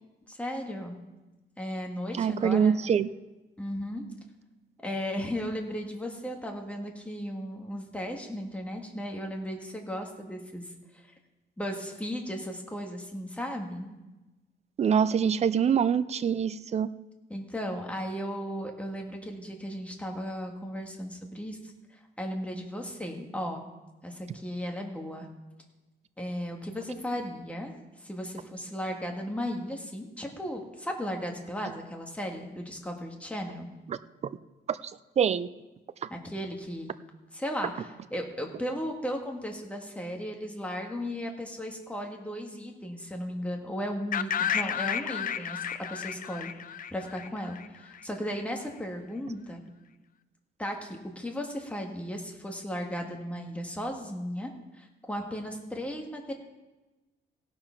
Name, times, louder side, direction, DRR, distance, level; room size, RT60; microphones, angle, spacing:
voice 1, 0.3-1.0 1.6-2.7 3.6-4.0 4.8-10.6 10.9-11.0 11.6-13.9 17.3-23.6 24.0-25.3 26.2-27.7 28.0-33.7 36.1-36.9 37.3-45.6 45.9-46.5 46.9-49.6 50.6-56.3, equal, 5° left, 2 dB, 1.7 m, -36 dB
voice 2, 2.2-3.1 14.8-16.9 33.9-34.0 34.7-35.5, right 7 dB, 35° right, 14 dB, 0.4 m, -25 dB
sound 1, 44.1-48.0, left 8 dB, 45° left, 0.5 m, -32 dB
16.5 x 6.8 x 5.8 m, 1.1 s
cardioid pair, 145°, 19 cm